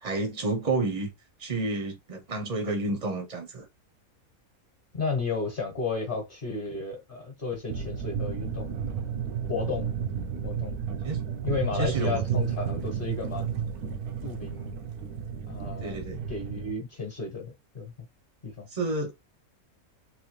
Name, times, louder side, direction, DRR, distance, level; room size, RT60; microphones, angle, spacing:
voice 1, 0.0-1.1 1.4-3.6 11.0-11.2 11.8-12.6 15.8-16.2 18.7-19.1, right 2 dB, 35° right, 0.7 m, -30 dB
voice 2, 4.9-8.8 9.5-9.9 10.4-10.7 11.4-13.6 14.2-14.7 15.5-17.9 18.4-18.7, left 4 dB, 40° left, 1.3 m, -33 dB
sound 1, 7.7-16.7, right 8 dB, 85° right, 1.2 m, -32 dB
3.6 x 3.0 x 3.1 m
omnidirectional pair, 1.5 m